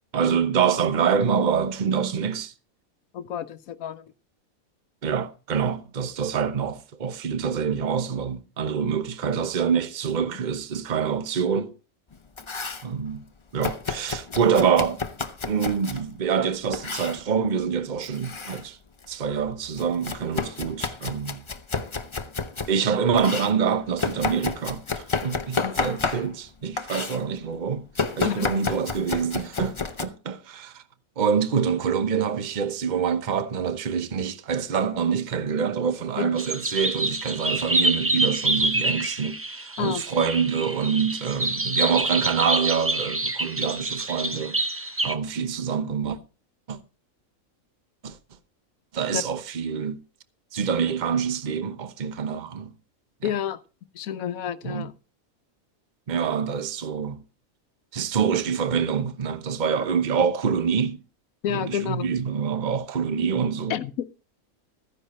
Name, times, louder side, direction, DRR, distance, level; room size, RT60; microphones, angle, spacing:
voice 1, 0.1-2.5 5.0-11.7 12.8-13.2 13.5-15.0 15.5-18.8 19.1-21.4 22.7-27.9 28.2-30.8 31.2-46.2 46.7-46.8 48.0-48.2 48.9-50.0 50.5-52.7 53.2-53.3 54.6-54.9 56.1-57.2 57.9-61.0 61.5-63.7, right 6 dB, 40° right, 0.9 m, -26 dB
voice 2, 3.1-4.1 10.3-10.4 25.6-25.8 28.2-28.5 36.2-36.4 39.8-40.2 49.1-49.2 53.2-53.6 53.9-54.9 61.4-62.1 63.7-63.9, left 9 dB, 85° left, 1.2 m, -30 dB
Domestic sounds home sounds, 12.1-12.9 13.6-16.0 16.7-17.2 18.0-18.6 19.0-22.8 23.2-26.5 26.8-27.2 27.9-30.1, left 4 dB, 30° left, 0.6 m, -31 dB
sound 1, 36.4-45.2, right 2 dB, 15° right, 0.5 m, -27 dB
14.5 x 10.0 x 4.2 m
omnidirectional pair, 1.5 m